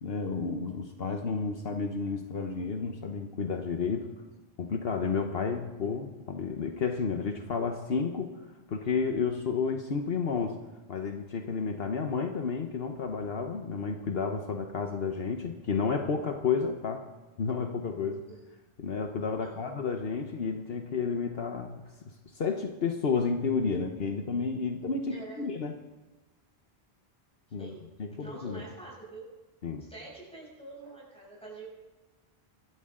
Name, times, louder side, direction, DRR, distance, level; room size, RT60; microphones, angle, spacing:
voice 1, 0.0-4.1 4.6-8.4 8.7-10.6 10.9-17.1 17.4-18.2 18.8-21.8 22.3-25.7 27.5-27.7 28.0-28.6 29.6-29.8, left 5 dB, 65° left, 4 dB, 1.2 m, -31 dB
voice 2, 25.1-25.6 27.6-27.9 28.2-29.3 29.8-31.7, right 3 dB, 5° left, -4 dB, 7.0 m, -46 dB
25.5 x 13.0 x 3.8 m, 1.2 s
omnidirectional pair, 1.1 m